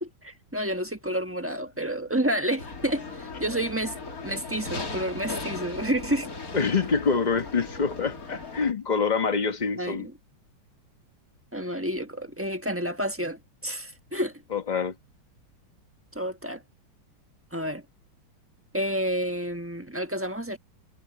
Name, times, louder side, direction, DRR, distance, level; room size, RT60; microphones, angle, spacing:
voice 1, 0.0-3.9 4.2-6.3 9.7-10.1 11.5-14.3 16.1-16.6 17.5-17.8 18.7-20.6, right 1 dB, 10° right, 1.0 m, -30 dB
sound 1, 2.6-8.7, left 3 dB, 45° left, 3.0 m, -37 dB
voice 2, 6.5-10.1 14.5-14.9, left 5 dB, 30° left, 0.9 m, -26 dB
omnidirectional pair, 2.1 m